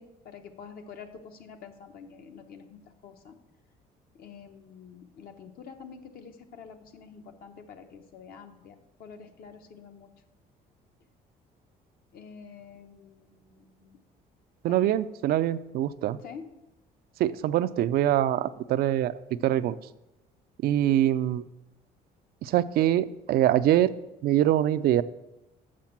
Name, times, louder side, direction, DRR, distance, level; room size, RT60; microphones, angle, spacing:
voice 1, 0.0-3.4 4.1-10.1 12.1-14.0 14.7-15.0 16.2-16.5, left 6 dB, 60° left, 6 dB, 1.0 m, -47 dB
voice 2, 14.6-16.2 17.2-19.8 20.6-21.4 22.4-23.9 24.2-25.0, right 12 dB, 65° right, 14 dB, 0.4 m, -24 dB
7.4 x 6.3 x 5.8 m, 0.96 s
cardioid pair, 110°, 17 cm